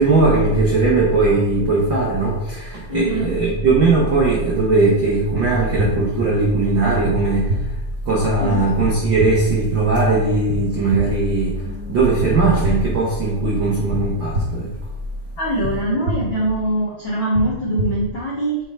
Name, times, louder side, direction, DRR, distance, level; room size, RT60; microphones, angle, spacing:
voice 1, 0.0-7.8 8.0-14.7, right 3 dB, 80° right, -4 dB, 1.0 m, -18 dB
voice 2, 2.9-3.4 8.4-8.7 15.4-18.6, right 1 dB, 70° left, -5 dB, 1.2 m, -22 dB
sound 1, 5.3-5.4 5.8-5.9 7.0-7.1 7.5-7.6 8.8-8.9 9.2-9.3 10.5-10.6 10.9-11.0 12.2-12.3 12.6-12.7 13.9-14.0 14.3-14.4 15.6-15.7 16.0-16.1 17.3-17.4 17.8-17.9, right 1 dB, 45° right, 1.5 m, -23 dB
7.0 x 3.4 x 4.4 m, 1.0 s
omnidirectional pair, 3.7 m